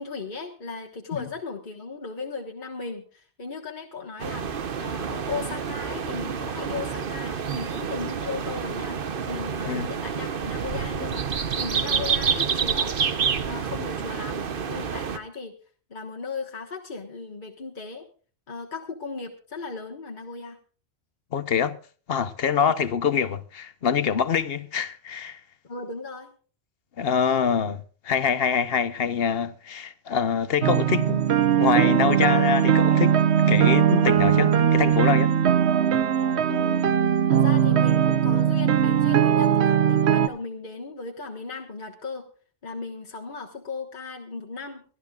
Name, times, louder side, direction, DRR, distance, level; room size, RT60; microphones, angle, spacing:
voice 1, 0.0-9.0 9.3-13.0 13.5-15.5 15.9-18.0 18.5-20.6 22.6-22.7 25.6-26.3 36.5-42.2 42.6-44.8, left 4 dB, 50° left, 1.6 m, -36 dB
sound 1, 4.2-15.2, right 6 dB, 60° right, 1.1 m, -28 dB
voice 2, 21.3-21.8 22.1-25.4 27.0-31.2 31.6-33.2 33.5-35.3, left 7 dB, 65° left, 1.1 m, -25 dB
sound 2, 30.6-40.3, right 9 dB, 80° right, 1.1 m, -20 dB
24.0 x 12.5 x 2.4 m
omnidirectional pair, 1.1 m